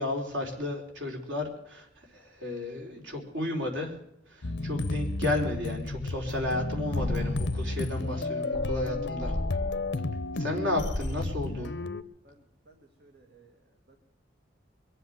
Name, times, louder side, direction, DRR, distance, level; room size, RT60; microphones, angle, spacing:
voice 1, 0.0-1.9 2.1-4.0 4.3-9.3 10.4-11.7, left 1 dB, 90° right, 1 dB, 4.2 m, -33 dB
sound 1, 4.4-12.0, left 2 dB, 65° left, 0.8 m, -32 dB
sound 2, 6.9-11.2, left 1 dB, 35° right, 4.3 m, -36 dB
voice 2, 12.2-13.5 13.9-14.0, right 3 dB, 60° right, 3 dB, 2.1 m, -57 dB
23.0 x 8.0 x 7.9 m, 0.79 s
head